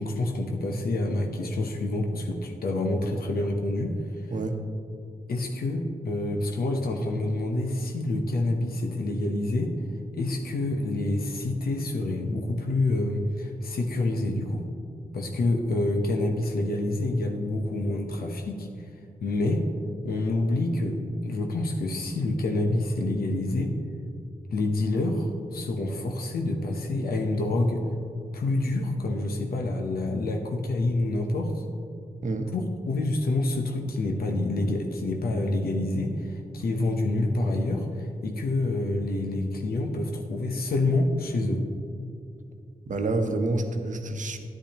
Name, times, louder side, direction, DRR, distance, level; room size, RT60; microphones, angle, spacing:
voice 1, 0.0-3.9 5.3-9.7 10.1-14.7 15.1-18.7 19.2-19.6 20.0-23.7 24.5-27.8 28.3-31.6 32.5-41.7, left 2 dB, 90° left, 3 dB, 0.8 m, -27 dB
voice 2, 32.2-32.5 42.9-44.4, right 2 dB, 55° right, 5 dB, 0.9 m, -28 dB
10.5 x 10.0 x 2.9 m, 2.4 s
wide cardioid pair, 80°, 15 cm